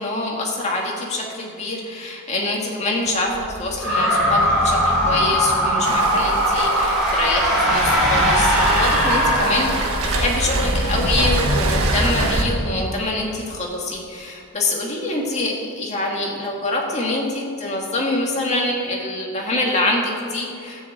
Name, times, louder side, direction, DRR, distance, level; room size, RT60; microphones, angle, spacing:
voice 1, 0.0-20.9, left 2 dB, 30° left, -1 dB, 2.1 m, -25 dB
sound 1, 3.0-12.8, equal, 45° right, 2.4 m, -29 dB
sound 2, 3.8-10.2, equal, ahead, 3.5 m, -20 dB
Waves surf, 5.9-12.4, right 2 dB, 90° right, 1.4 m, -25 dB
12.0 x 7.0 x 8.2 m, 2.5 s
head